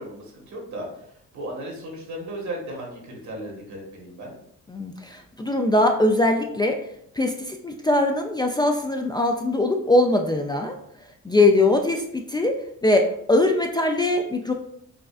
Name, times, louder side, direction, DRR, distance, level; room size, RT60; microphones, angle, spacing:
voice 1, 0.0-4.3 11.3-11.6, right 1 dB, 70° right, -1 dB, 1.4 m, -36 dB
voice 2, 4.7-6.8 7.2-10.8 11.2-12.6 12.8-14.5, left 2 dB, 15° left, 3 dB, 0.3 m, -21 dB
4.9 x 2.4 x 2.4 m, 0.70 s
cardioid pair, 90°, 30 cm